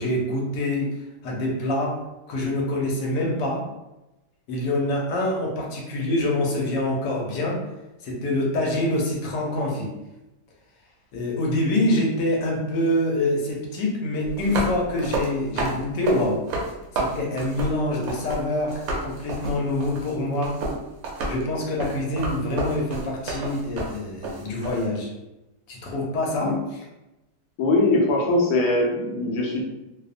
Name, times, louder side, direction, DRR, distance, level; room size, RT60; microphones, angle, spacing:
voice 1, 0.0-3.7 4.5-7.6 8.0-9.9 11.1-16.5 16.9-20.6 21.3-25.1 25.7-26.6, left 1 dB, 85° left, -1 dB, 1.2 m, -25 dB
sound 1, 14.2-18.4 18.7-24.8, right 2 dB, 65° right, 0.9 m, -30 dB
voice 2, 27.6-29.6, left 2 dB, 70° left, -1 dB, 0.9 m, -21 dB
2.8 x 2.0 x 2.4 m, 0.96 s
omnidirectional pair, 1.8 m